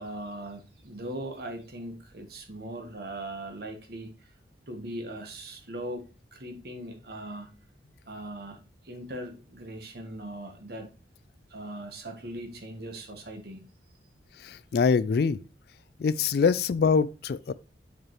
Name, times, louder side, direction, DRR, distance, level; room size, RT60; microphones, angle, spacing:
voice 1, 0.0-4.3 4.7-7.5 8.1-8.6 8.8-10.9 11.5-13.7, right 1 dB, 55° right, 1.3 m, -39 dB
voice 2, 14.4-15.4 16.0-17.5, left 5 dB, 55° left, 0.3 m, -24 dB
7.3 x 4.6 x 3.1 m
head